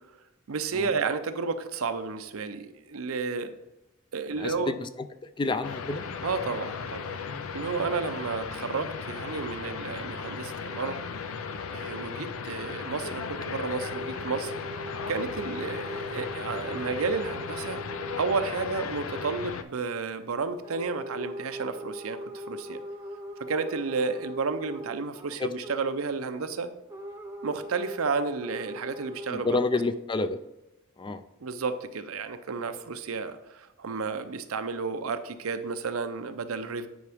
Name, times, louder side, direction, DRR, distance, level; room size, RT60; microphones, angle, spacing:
voice 1, 0.5-3.5 4.1-4.7 6.2-7.1 7.5-11.0 11.7-14.5 15.1-17.8 18.2-22.8 23.4-26.7 27.4-29.6 31.4-36.9, right 4 dB, 90° right, 10 dB, 0.6 m, -32 dB
voice 2, 4.3-4.9 5.4-6.0 7.2-7.4 12.0-12.2 25.4-25.5 29.3-30.4 31.0-31.2, left 3 dB, 20° left, 11 dB, 0.3 m, -29 dB
sound 1, 5.6-19.6, left 5 dB, 80° left, 0.5 m, -36 dB
sound 2, 13.7-18.8 19.1-19.5 20.6-26.0 26.9-29.6, equal, 15° right, 0.7 m, -40 dB
9.4 x 4.7 x 3.5 m, 0.97 s
head